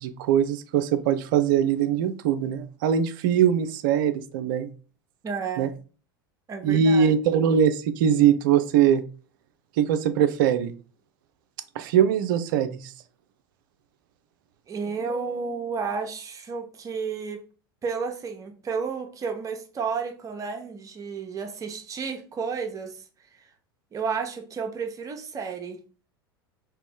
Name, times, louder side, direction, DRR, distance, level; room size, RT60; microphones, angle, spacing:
voice 1, 0.0-4.7 5.6-5.7 6.6-9.0 9.8-10.7 11.8-12.9, right 8 dB, 55° right, 11 dB, 0.4 m, -22 dB
voice 2, 5.2-5.7 6.5-7.1 14.7-17.4 17.8-23.0 23.4-23.5 23.9-25.8, right 5 dB, 25° right, 5 dB, 0.8 m, -32 dB
3.0 x 2.9 x 3.5 m, 0.37 s
figure-of-eight pair, 80°, 13 cm